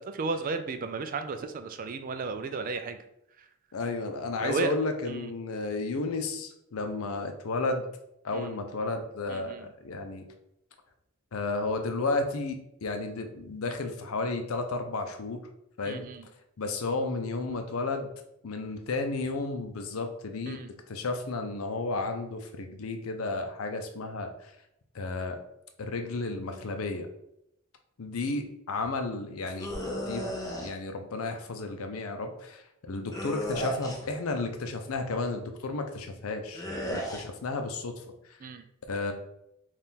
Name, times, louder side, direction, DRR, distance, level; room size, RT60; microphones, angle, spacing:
voice 1, 0.2-3.0 4.4-4.8 5.1-5.3 8.3-8.6 9.3-9.7 15.9-16.3 20.5-20.7 38.4-38.6, right 4 dB, 40° right, 8 dB, 0.3 m, -34 dB
voice 2, 3.7-7.9 8.2-10.3 11.3-15.4 15.8-16.0 16.6-18.1 18.4-20.6 20.9-24.5 24.9-25.4 25.8-27.1 28.0-30.3 30.6-37.9 38.9-39.1, left 3 dB, 80° left, 6 dB, 0.6 m, -33 dB
sound 1, 29.6-30.7 33.1-34.1 36.5-37.2, equal, 15° left, 0.6 m, -34 dB
4.2 x 2.4 x 3.6 m, 0.80 s
head